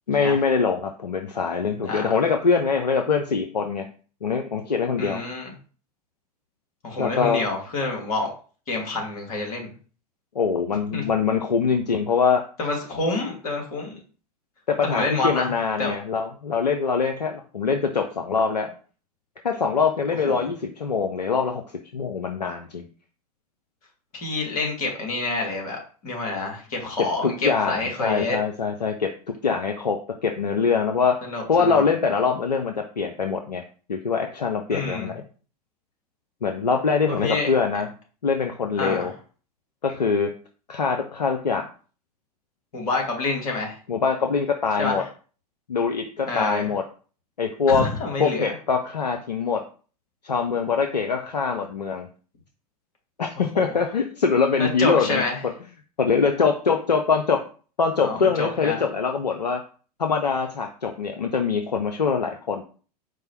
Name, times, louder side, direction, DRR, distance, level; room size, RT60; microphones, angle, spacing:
voice 1, 0.1-3.9 4.2-5.2 7.0-7.4 10.4-12.4 14.7-18.7 19.4-21.6 21.9-22.8 27.2-29.1 29.4-31.2 31.5-33.6 33.9-35.2 36.4-37.9 38.2-39.1 39.8-40.3 40.7-41.7 43.9-45.0 45.7-46.8 47.4-47.9 48.2-49.6 50.2-52.1 53.2-55.5 56.0-57.4 57.8-59.6 60.0-62.6, left 5 dB, 90° left, 4 dB, 0.4 m, -23 dB
voice 2, 1.8-2.2 5.0-5.5 6.8-8.3 8.7-9.7 10.9-11.0 12.6-14.0 14.8-15.5 15.8-16.0 20.3-20.5 24.1-28.4 31.2-31.9 34.7-35.1 37.1-37.5 38.8-39.1 42.7-43.8 44.8-45.1 46.3-46.7 47.7-48.5 53.5-53.8 54.6-55.4 58.0-58.8, left 3 dB, 65° left, 0 dB, 1.6 m, -28 dB
4.6 x 2.0 x 4.3 m, 0.40 s
figure-of-eight pair, 90°, 20 cm